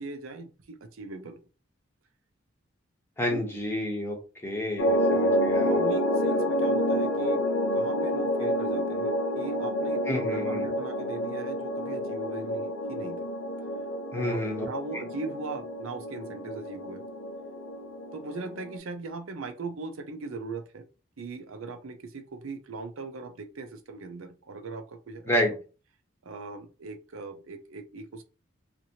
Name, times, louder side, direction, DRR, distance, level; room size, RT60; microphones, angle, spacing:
voice 1, 0.0-1.4 3.3-3.5 5.6-7.4 7.7-13.3 14.1-17.0 18.1-20.8 21.2-25.6 26.2-28.2, right 3 dB, 90° right, 7 dB, 0.6 m, -39 dB
voice 2, 3.2-4.2 4.4-5.8 10.1-10.7 14.1-14.7 25.3-25.5, left 1 dB, 10° left, 0 dB, 0.8 m, -29 dB
sound 1, 4.8-18.8, equal, 80° left, 0.7 m, -28 dB
2.8 x 2.5 x 2.8 m, 0.34 s
head